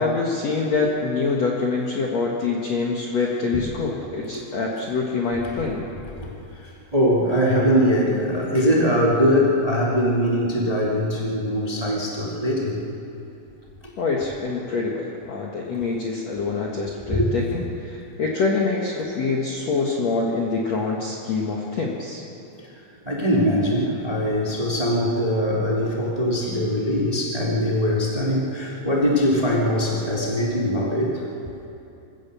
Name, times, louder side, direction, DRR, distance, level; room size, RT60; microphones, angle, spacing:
voice 1, 0.0-5.9 14.0-17.6 17.9-22.2, left 4 dB, 85° left, -2 dB, 1.4 m, -25 dB
voice 2, 6.9-12.8 17.0-17.3 23.0-31.1, equal, 15° right, -3 dB, 1.5 m, -21 dB
27.0 x 16.5 x 6.9 m, 2.9 s
omnidirectional pair, 5.7 m